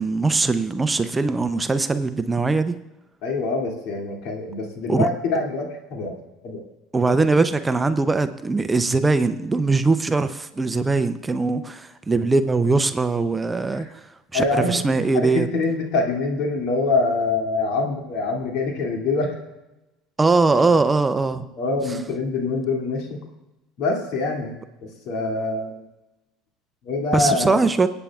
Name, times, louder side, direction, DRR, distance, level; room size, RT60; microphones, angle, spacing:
voice 1, 0.0-2.8 4.9-5.1 6.9-13.9 14.3-15.5 20.2-21.4 27.1-27.9, right 3 dB, 15° right, 10 dB, 0.6 m, -21 dB
voice 2, 3.2-6.1 6.4-6.6 13.7-13.9 14.3-14.8 15.1-19.4 21.6-23.2 23.8-24.5 24.8-25.8 26.8-27.6, left 3 dB, 65° left, 1 dB, 2.5 m, -25 dB
26.5 x 8.9 x 2.4 m, 0.98 s
supercardioid pair, 95°, 0 cm